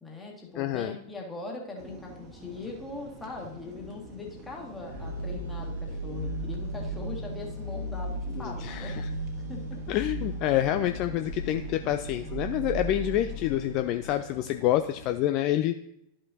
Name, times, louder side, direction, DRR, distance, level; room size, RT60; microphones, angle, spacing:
voice 1, 0.0-9.0 9.5-9.8, left 3 dB, 10° left, -1 dB, 1.9 m, -40 dB
voice 2, 0.6-0.9 8.3-9.1 9.9-15.8, left 13 dB, 40° left, 9 dB, 0.3 m, -27 dB
sound 1, 1.8-15.2, right 1 dB, 35° right, 1.4 m, -48 dB
sound 2, 4.8-14.2, right 1 dB, 75° right, 1.5 m, -36 dB
12.0 x 5.6 x 2.7 m, 0.80 s
figure-of-eight pair, 90°, 0 cm